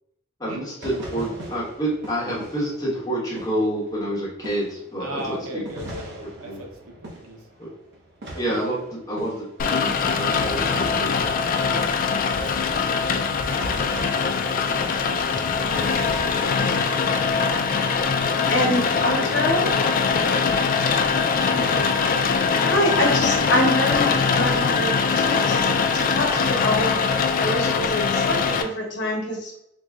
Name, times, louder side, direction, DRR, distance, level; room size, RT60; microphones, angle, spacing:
voice 1, 0.4-5.6 6.4-6.6 7.6-7.7 8.3-11.1, right 1 dB, 20° left, 1.3 m, -28 dB
sound 1, 0.8-4.2 4.4-17.0, right 1 dB, 60° right, 0.8 m, -40 dB
voice 2, 5.0-6.7 7.1-7.4 8.6-8.8 13.8-14.0 15.0-15.2 15.6-17.6 18.5-20.4 21.4-21.7, equal, 90° right, 0.8 m, -38 dB
Rain, 9.6-28.6, left 5 dB, 40° left, 0.3 m, -22 dB
voice 3, 18.5-19.7 21.5-21.6 22.6-29.5, left 1 dB, 60° left, 1.0 m, -25 dB
4.1 x 3.0 x 2.4 m
head